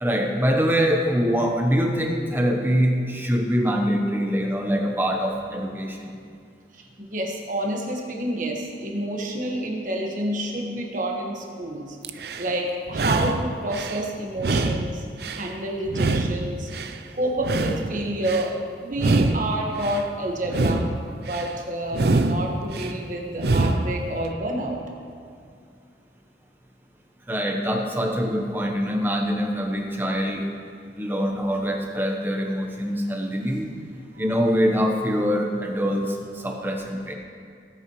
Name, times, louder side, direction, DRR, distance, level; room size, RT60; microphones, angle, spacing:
voice 1, 0.0-6.1 27.3-30.4 31.0-33.7 34.2-37.1, equal, 10° right, 2 dB, 1.0 m, -24 dB
voice 2, 6.7-12.0 12.4-15.0 15.4-16.7 17.1-20.9 21.2-24.8 34.1-34.3, right 1 dB, 45° right, 0 dB, 1.5 m, -29 dB
sound 1, 12.0-12.5 12.9-14.0 14.4-15.5 15.9-17.0 17.4-18.5 18.9-20.0 20.4-21.5 21.9-22.9 23.4-24.0, right 2 dB, 65° right, 0.5 m, -25 dB
18.5 x 8.7 x 3.2 m, 2.3 s
head